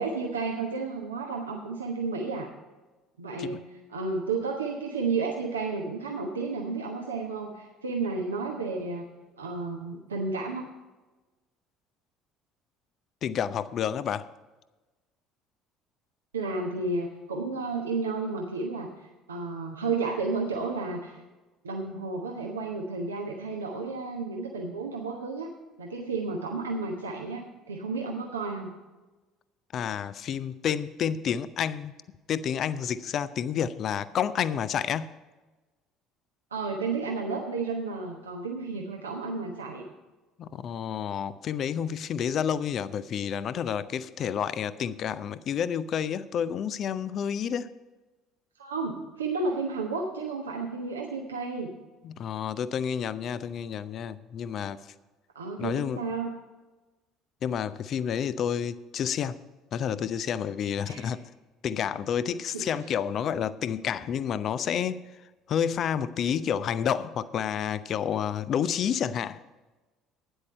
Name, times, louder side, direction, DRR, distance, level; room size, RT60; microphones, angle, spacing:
voice 1, 0.0-2.5 3.2-9.1 9.4-10.6 16.3-18.9 19.3-21.2 21.6-25.5 25.8-28.7 36.5-39.8 48.6-51.7 55.3-56.3 60.9-61.1 62.5-62.6, right 4 dB, 80° right, 0 dB, 1.1 m, -32 dB
voice 2, 13.2-14.3 29.7-31.9 32.3-35.1 40.4-47.7 52.0-54.8 55.6-56.0 57.4-59.3 59.7-61.2 61.6-65.0 65.5-69.4, left 8 dB, 45° left, 15 dB, 0.6 m, -29 dB
12.5 x 9.9 x 4.3 m, 1.2 s
figure-of-eight pair, 60°, 0 cm